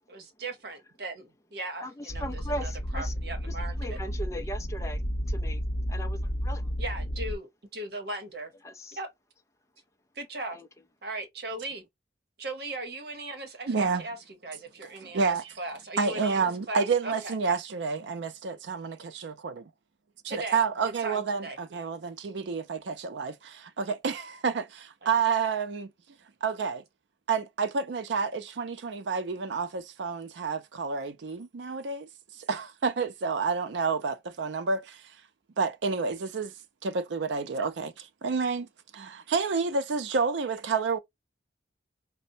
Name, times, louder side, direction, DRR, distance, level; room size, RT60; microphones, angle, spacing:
voice 1, 0.1-4.0 6.8-8.5 8.9-9.1 10.1-10.6 11.0-11.8 12.4-14.2 14.4-17.4 20.3-20.6 20.8-21.6 25.0-25.1, right 2 dB, 60° right, 0.9 m, -38 dB
voice 2, 1.8-3.1 3.4-5.0 5.3-5.6 5.9-6.8 8.6-9.0 10.5-10.7, equal, 15° left, 0.4 m, -38 dB
sound 1, 2.1-7.3, equal, 30° left, 0.8 m, -32 dB
voice 3, 13.7-14.1 15.0-15.5 16.0-19.7 20.2-25.9 26.4-26.8 27.3-32.1 32.4-35.0 35.6-36.5 36.8-38.7 38.9-41.0, right 5 dB, 80° right, 0.5 m, -29 dB
4.2 x 2.1 x 2.6 m
head